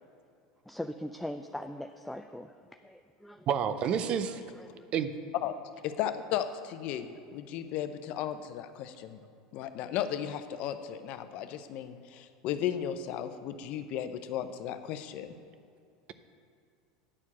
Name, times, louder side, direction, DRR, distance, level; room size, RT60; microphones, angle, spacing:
voice 1, 0.7-3.5 4.3-4.9, left 1 dB, 5° left, 7 dB, 0.3 m, -41 dB
voice 2, 3.5-4.4 4.9-5.1, right 8 dB, 45° right, 11 dB, 0.6 m, -29 dB
voice 3, 5.8-9.2 9.5-15.3, left 10 dB, 55° left, 10 dB, 0.6 m, -35 dB
9.7 x 4.5 x 7.2 m, 2.5 s
hypercardioid pair, 100°, 3 cm